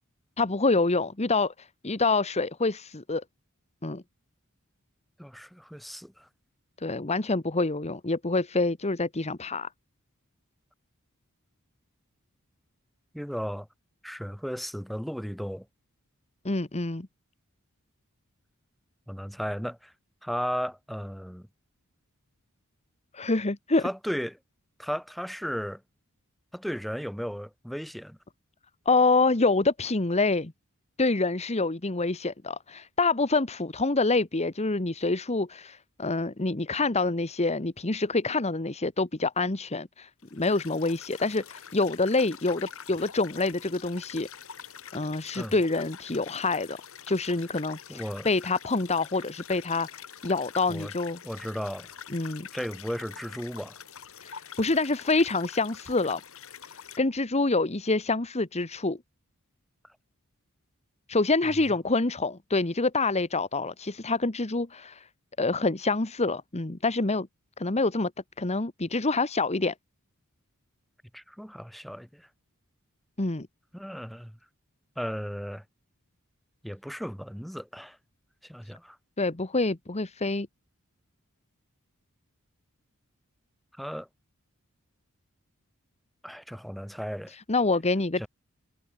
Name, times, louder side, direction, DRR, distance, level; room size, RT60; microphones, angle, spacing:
voice 1, 0.4-3.2 3.8-4.0 6.8-9.7 16.4-17.1 23.1-23.8 28.8-30.5 31.0-44.3 44.9-46.8 47.1-49.9 50.2-51.2 52.1-52.5 54.2-56.2 57.0-59.0 61.1-65.1 65.4-67.3 67.6-68.1 68.4-69.7 73.2-73.5 79.2-80.5 87.5-88.3, left 3 dB, 30° left, 1.3 m, -26 dB
voice 2, 5.2-6.3 13.1-13.7 14.0-15.6 19.1-19.9 20.2-21.5 23.8-24.4 24.8-25.8 26.5-28.2 45.3-45.6 47.9-48.3 50.7-50.9 51.2-51.9 52.5-53.8 71.1-72.3 73.7-74.4 75.0-75.6 76.6-78.0 78.4-79.0 83.8-84.1 86.2-87.3 88.2-88.3, equal, ahead, 3.2 m, -35 dB
sound 1, 40.2-57.0, left 8 dB, 65° left, 3.3 m, -45 dB
head